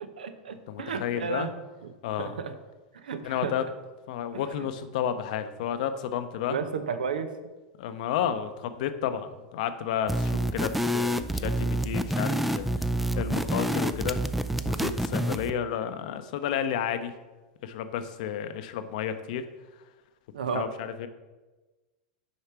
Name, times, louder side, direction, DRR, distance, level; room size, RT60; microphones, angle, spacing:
voice 1, 0.0-1.5 1.8-1.9 2.2-2.6 2.9-3.5 6.5-7.3 20.3-20.7, right 6 dB, 85° right, 10 dB, 0.6 m, -32 dB
voice 2, 0.7-1.5 2.0-2.4 3.2-3.6 4.1-6.6 7.8-12.9 13.2-14.2 14.6-17.1 17.6-19.4 20.5-21.1, left 9 dB, 65° left, 10 dB, 0.6 m, -31 dB
sound 1, 10.1-15.5, right 1 dB, 5° right, 0.3 m, -28 dB
6.7 x 4.7 x 4.5 m, 1.2 s
hypercardioid pair, 105°, 5 cm